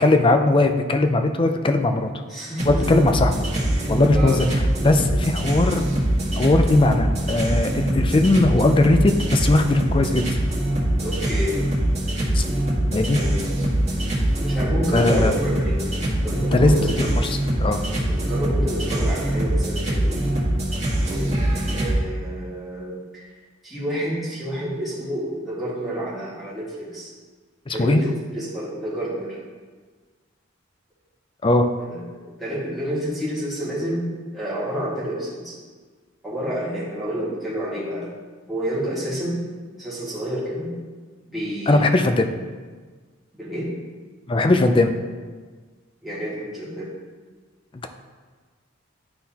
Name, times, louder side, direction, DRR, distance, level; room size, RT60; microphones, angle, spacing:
voice 1, 0.0-2.1 2.7-3.4 3.9-4.5 4.8-5.9 6.4-10.2 12.3-12.4 12.9-13.2 14.9-15.3 16.5-17.8 27.7-28.0 31.4-31.7 41.7-42.3 44.3-44.9, left 2 dB, 25° left, 7 dB, 0.4 m, -19 dB
voice 2, 2.3-2.8 4.1-4.4 11.0-11.6 13.0-13.6 14.4-15.8 16.2-17.2 18.0-20.3 21.0-21.5 21.7-23.3 23.6-27.1 27.7-29.4 31.9-34.1 34.3-35.6 36.2-38.1 38.5-39.4 39.7-40.8 41.3-42.0 43.3-43.8 46.0-46.9, equal, ahead, -10 dB, 1.8 m, -29 dB
sound 1, 2.6-21.9, right 1 dB, 30° right, 1.5 m, -23 dB
11.0 x 3.8 x 2.8 m, 1.5 s
head